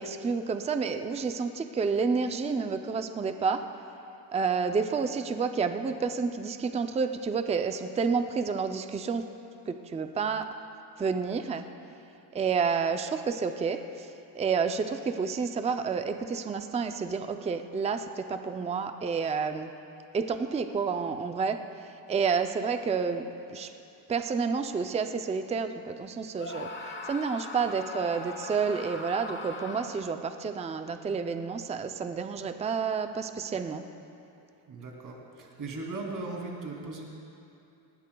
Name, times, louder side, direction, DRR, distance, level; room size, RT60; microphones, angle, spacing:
voice 1, 0.0-3.6 4.3-9.2 9.7-10.5 11.0-11.6 12.3-13.8 14.3-19.7 20.1-21.6 22.1-23.2 23.5-23.7 24.1-26.7 27.1-33.8, right 5 dB, 15° right, 7 dB, 0.4 m, -29 dB
Screaming, 26.4-30.2, left 3 dB, 25° left, 1.1 m, -40 dB
voice 2, 34.7-37.0, right 3 dB, 45° right, -1 dB, 2.7 m, -38 dB
19.5 x 19.0 x 2.3 m, 2.8 s
cardioid pair, 130°, 46 cm